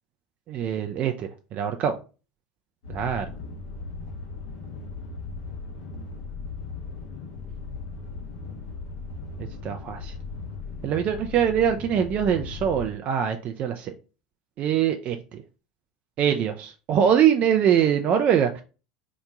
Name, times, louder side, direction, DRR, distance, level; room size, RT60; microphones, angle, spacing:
voice 1, 0.5-2.0 2.9-3.3 9.6-10.1 10.8-13.9 14.6-15.4 16.2-18.6, right 8 dB, 45° right, 0.4 m, -23 dB
sound 1, 2.8-12.9, left 4 dB, 70° left, 1.0 m, -37 dB
2.9 x 2.1 x 3.7 m
hypercardioid pair, 85°, 4 cm